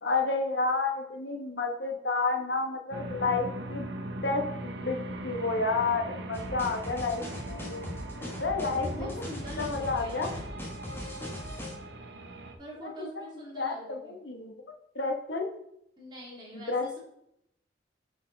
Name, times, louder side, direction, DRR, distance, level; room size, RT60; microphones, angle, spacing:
voice 1, 0.0-3.9 4.2-7.9 8.4-9.2 9.6-10.3 13.0-13.2 13.6-14.6 14.9-15.5 16.5-17.0, left 3 dB, 80° left, 3 dB, 1.1 m, -30 dB
sound 1, 2.9-12.5, right 2 dB, 80° right, 0.8 m, -40 dB
sound 2, 6.3-11.7, left 1 dB, 15° left, 1.4 m, -40 dB
sound 3, 8.6-10.7, left 1 dB, 60° right, 2.1 m, -44 dB
voice 2, 8.8-10.5 12.6-14.2 16.0-17.0, equal, 25° right, -5 dB, 2.6 m, -44 dB
8.5 x 4.5 x 3.9 m, 0.76 s
head